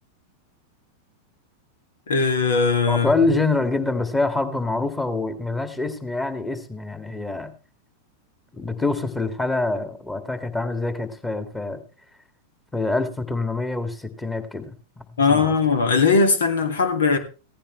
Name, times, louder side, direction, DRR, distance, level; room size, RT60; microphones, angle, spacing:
voice 1, 2.1-3.1 15.2-17.2, left 4 dB, 65° left, 2.4 m, -19 dB
voice 2, 2.9-7.5 8.5-11.8 12.7-14.7 15.3-15.5, left 3 dB, 10° left, 2.2 m, -25 dB
17.0 x 14.5 x 3.3 m
figure-of-eight pair, 90°, 0 cm